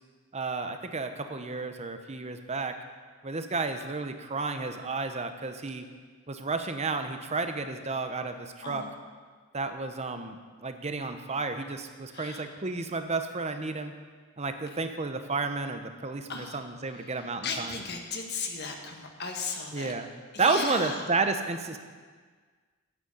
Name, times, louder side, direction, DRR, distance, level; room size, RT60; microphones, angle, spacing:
voice 1, 0.3-2.7 3.2-5.8 6.3-8.8 9.5-13.9 14.4-17.8 19.7-20.1 20.4-21.8, right 3 dB, 30° right, 7 dB, 0.8 m, -31 dB
voice 2, 8.6-9.0 12.1-12.5 16.3-16.6 16.9-19.9 20.3-21.1, left 4 dB, 50° left, 3 dB, 1.5 m, -36 dB
9.7 x 8.1 x 8.5 m, 1.5 s
head